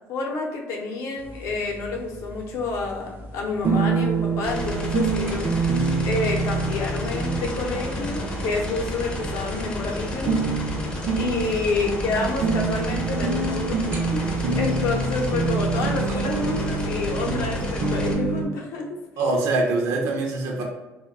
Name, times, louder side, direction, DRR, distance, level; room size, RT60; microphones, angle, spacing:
voice 1, 0.1-10.3 11.2-18.9, left 3 dB, 75° left, 1 dB, 0.6 m, -28 dB
sound 1, 1.2-18.4, right 4 dB, 40° right, 0.4 m, -27 dB
sound 2, 4.4-18.1, left 1 dB, 20° left, 0.4 m, -32 dB
voice 2, 19.2-20.6, right 2 dB, 80° right, 1 dB, 0.6 m, -23 dB
2.3 x 2.1 x 3.4 m, 1.1 s
cardioid pair, 165°, 5 cm